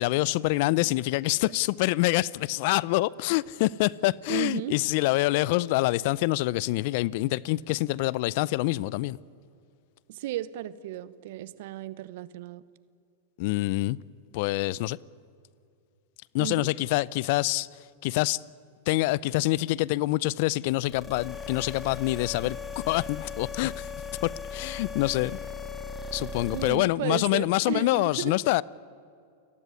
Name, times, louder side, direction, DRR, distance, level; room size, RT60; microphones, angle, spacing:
voice 1, 0.0-9.2 13.4-14.0 14.3-15.0 16.3-18.4 18.9-23.9 24.2-25.4 26.1-28.6, left 19 dB, 55° left, 0.6 m, -26 dB
voice 2, 4.3-4.8 10.1-12.6 16.4-16.7 26.5-28.3, right 14 dB, 65° right, 1.1 m, -34 dB
sound 1, 20.8-26.8, left 5 dB, 15° left, 2.8 m, -38 dB
30.0 x 18.5 x 9.8 m
hypercardioid pair, 105°, 0 cm